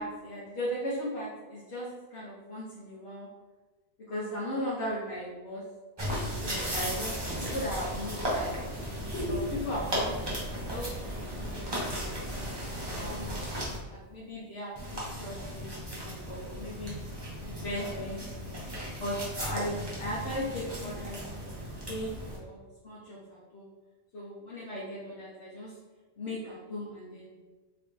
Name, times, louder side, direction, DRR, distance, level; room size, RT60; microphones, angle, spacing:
voice 1, 0.0-3.3 4.1-5.6 6.4-10.2 10.5-10.8 11.2-13.4 13.9-17.0 17.5-18.5 19.0-21.6 21.9-22.6 22.8-23.7 24.1-25.7 26.2-27.4, equal, 65° left, -10 dB, 1.2 m, -37 dB
sound 1, 6.0-13.8 14.8-22.4, equal, 25° right, 0.8 m, -36 dB
3.5 x 3.3 x 2.6 m, 1.3 s
omnidirectional pair, 1.2 m